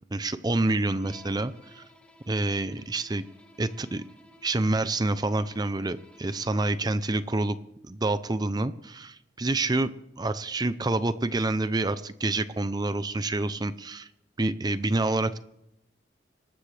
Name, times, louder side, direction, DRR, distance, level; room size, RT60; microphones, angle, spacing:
voice 1, 0.1-1.8 2.3-3.2 3.6-4.0 4.4-7.6 7.9-9.9 10.2-14.1 14.4-15.4, right 2 dB, 25° right, 13 dB, 0.5 m, -27 dB
Bowed string instrument, 1.0-6.9, left 1 dB, 5° left, 1.9 m, -55 dB
26.0 x 13.0 x 3.4 m, 0.83 s
head